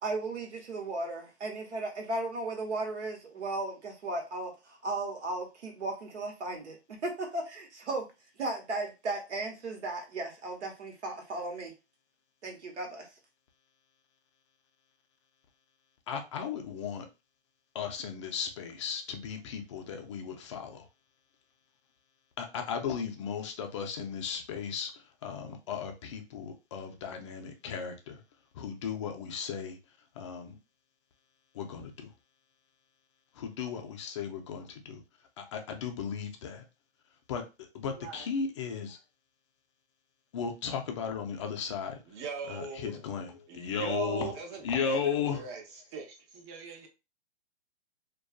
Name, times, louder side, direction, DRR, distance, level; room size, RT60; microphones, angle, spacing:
voice 1, 0.0-6.8 7.0-8.1 8.4-11.7 12.4-13.1, right 2 dB, 75° right, 1.1 m, -35 dB
voice 2, 16.1-17.1 17.7-20.9 22.4-28.2 28.5-29.8 30.2-30.6 31.5-32.1 33.3-35.0 35.4-36.6 37.3-37.4 37.7-39.0 40.3-42.0 42.5-44.3 44.6-45.5, left 6 dB, 30° left, 0.4 m, -35 dB
voice 3, 37.9-38.3 42.1-43.0 43.5-45.6 45.9-46.9, right 5 dB, 25° right, 0.5 m, -40 dB
2.4 x 2.3 x 2.3 m
hypercardioid pair, 125°, 35 cm